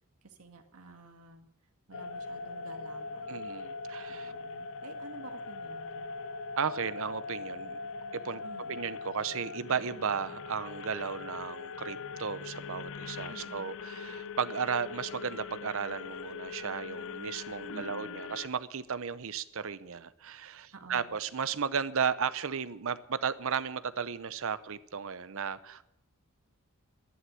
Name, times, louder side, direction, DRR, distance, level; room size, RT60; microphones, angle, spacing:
voice 1, 0.2-1.5 1.9-3.4 4.1-6.1 8.4-8.8 13.3-13.7 17.7-18.3 20.7-21.2, right 2 dB, 80° right, 5 dB, 1.9 m, -51 dB
sound 1, 1.9-18.5, left 4 dB, 65° left, 0.6 m, -41 dB
voice 2, 3.3-4.3 6.6-7.8 8.1-8.4 8.7-25.8, right 6 dB, 65° right, 14 dB, 0.7 m, -34 dB
11.5 x 11.0 x 7.6 m, 0.80 s
head